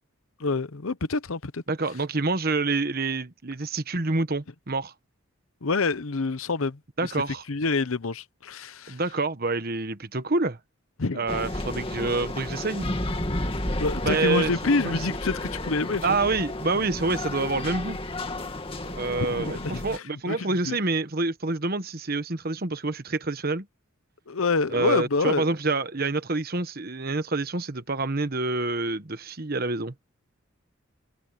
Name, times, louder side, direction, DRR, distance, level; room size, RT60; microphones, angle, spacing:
voice 1, 0.4-1.6 5.6-7.1 7.5-9.0 11.0-11.3 13.8-16.2 19.3-20.8 24.3-25.5, left 3 dB, 75° left, 0.9 m, -27 dB
voice 2, 1.7-4.9 7.0-7.4 8.9-10.6 11.1-12.9 14.0-14.5 14.8-15.0 16.0-18.0 18.8-23.7 24.7-29.9, right 3 dB, 45° right, 1.2 m, -27 dB
sound 1, 11.3-20.0, left 1 dB, 25° left, 2.2 m, -32 dB
head